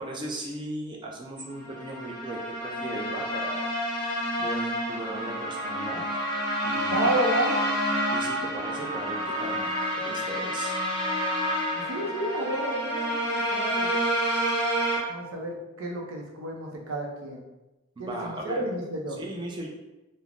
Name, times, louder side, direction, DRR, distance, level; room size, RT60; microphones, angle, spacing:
voice 1, 0.0-3.7 4.4-6.0 6.6-7.1 8.1-10.7 18.0-18.6 19.2-19.7, right 2 dB, 20° right, 0 dB, 0.4 m, -37 dB
sound 1, 1.6-15.0, equal, 25° left, 0.7 m, -29 dB
voice 2, 6.9-7.6 11.8-13.9 15.1-17.4 18.0-19.2, right 1 dB, 80° right, 0 dB, 0.5 m, -30 dB
3.2 x 2.0 x 2.4 m, 1.0 s
head